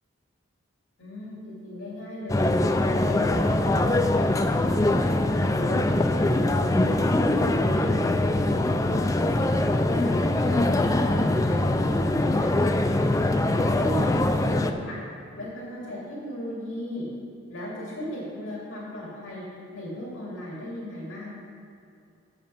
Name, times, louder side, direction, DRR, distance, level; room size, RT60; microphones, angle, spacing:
voice 1, 1.0-3.9 4.2-5.9 6.2-8.0 8.9-9.7 10.0-12.6 13.4-14.9 15.3-17.0 17.5-19.4 19.7-21.3, left 1 dB, 85° left, -6 dB, 2.4 m, -37 dB
sound 1, 2.3-14.7, left 1 dB, 15° left, 0.3 m, -23 dB
9.5 x 6.8 x 5.7 m, 2.6 s
head